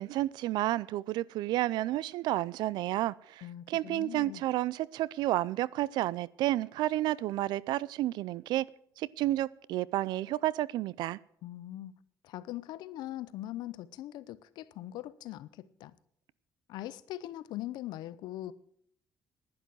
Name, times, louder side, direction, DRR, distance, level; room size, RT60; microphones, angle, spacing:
voice 1, 0.0-8.6 9.0-11.2, right 15 dB, 90° right, 0.5 m, -31 dB
voice 2, 3.4-4.4 11.4-11.9 12.2-16.0 16.7-18.5, left 14 dB, 90° left, 0.7 m, -41 dB
11.0 x 10.5 x 7.6 m
cardioid pair, 120°, 7 cm